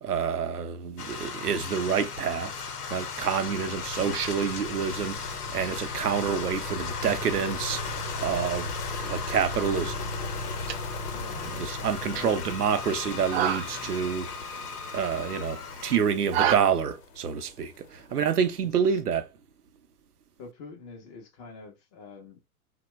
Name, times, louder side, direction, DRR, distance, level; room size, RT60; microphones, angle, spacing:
voice 1, 0.0-2.5 2.9-8.7 9.1-10.0 11.3-14.6 14.9-19.3, right 7 dB, 90° right, 0.6 m, -28 dB
sound 1, 1.0-16.0, left 5 dB, 85° left, 0.7 m, -37 dB
sound 2, 3.5-18.6, left 2 dB, 45° left, 0.8 m, -39 dB
sound 3, 10.4-16.6, right 10 dB, 45° right, 0.5 m, -33 dB
voice 2, 11.1-12.5 18.1-18.3 18.6-19.0 20.4-22.4, left 4 dB, 20° left, 0.4 m, -47 dB
2.8 x 2.1 x 3.0 m
figure-of-eight pair, 100°, 45 cm